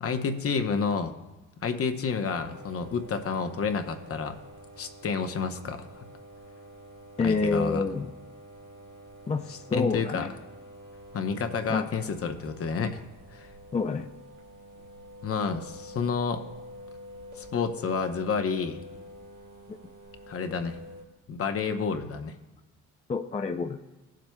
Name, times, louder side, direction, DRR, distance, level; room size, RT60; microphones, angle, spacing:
voice 1, 0.0-1.1 1.6-4.4 4.8-6.1 7.2-7.8 9.5-10.3 11.1-13.0 13.3-13.5 15.2-16.4 17.4-18.8 20.3-20.8 21.3-22.3, left 5 dB, 50° left, 7 dB, 0.9 m, -30 dB
sound 1, 2.4-21.0, equal, 85° right, 2.0 m, -47 dB
voice 2, 7.2-8.1 9.3-10.3 11.7-11.9 13.7-14.1 19.7-19.8 23.1-23.8, left 4 dB, 20° left, 5 dB, 0.4 m, -28 dB
17.5 x 7.5 x 2.3 m, 1.1 s
cardioid pair, 90°, 30 cm